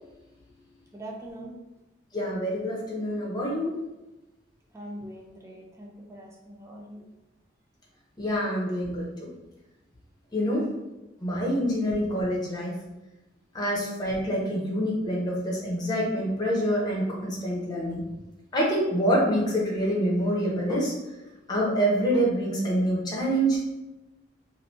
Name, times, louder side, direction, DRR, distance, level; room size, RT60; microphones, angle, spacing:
voice 1, 0.9-1.6 4.7-7.1 10.3-10.5, right 1 dB, 15° right, -1 dB, 0.4 m, -42 dB
voice 2, 2.1-3.8 8.2-9.3 10.3-10.6 11.2-12.7 13.5-18.0 18.5-20.9 21.5-23.6, equal, 20° left, -4 dB, 0.8 m, -26 dB
3.1 x 2.6 x 2.7 m, 1.0 s
head